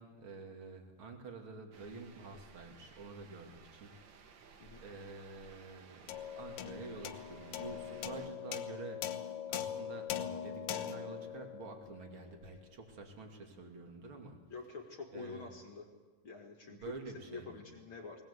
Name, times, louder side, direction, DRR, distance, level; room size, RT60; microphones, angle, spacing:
voice 1, 0.0-4.5 4.8-6.1 6.4-14.4 15.1-15.5 16.7-17.6, right 3 dB, 40° right, 3 dB, 2.9 m, -49 dB
sound 1, 1.7-8.3, right 5 dB, 65° right, 1.1 m, -58 dB
sound 2, 6.1-12.7, left 9 dB, 75° left, 2.6 m, -42 dB
voice 2, 14.5-15.9 16.2-16.9 17.3-18.2, left 4 dB, 45° left, 3 dB, 1.9 m, -47 dB
20.5 x 19.5 x 8.2 m, 1.4 s
omnidirectional pair, 4.1 m